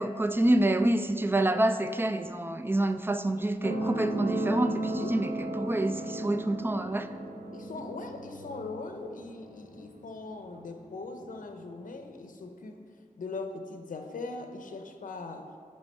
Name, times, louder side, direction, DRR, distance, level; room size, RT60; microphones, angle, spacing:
voice 1, 0.0-7.1, right 1 dB, 15° right, 9 dB, 0.3 m, -27 dB
sound 1, 3.6-10.7 11.5-11.6, right 1 dB, 90° right, 1.1 m, -35 dB
voice 2, 7.5-12.8 13.2-15.5, left 3 dB, 65° left, 5 dB, 0.6 m, -40 dB
9.6 x 3.4 x 5.3 m, 2.3 s
wide cardioid pair, 115°, 15 cm